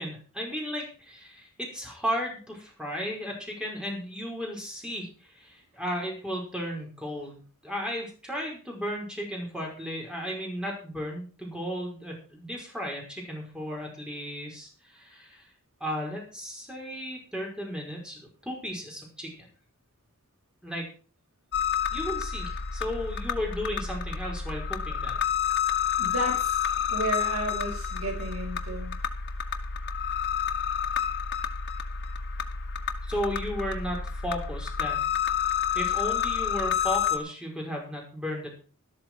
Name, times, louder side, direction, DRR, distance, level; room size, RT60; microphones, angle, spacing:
voice 1, 0.0-15.5 15.8-19.3 20.6-20.9 21.9-25.2 33.0-35.0 35.7-38.5, equal, 5° right, -1 dB, 5.3 m, -34 dB
sound 1, 21.5-37.2, left 8 dB, 55° left, 1.4 m, -29 dB
voice 2, 26.0-26.6 26.9-29.0, right 1 dB, 70° right, 1 dB, 6.6 m, -32 dB
13.0 x 12.5 x 4.8 m, 0.39 s
head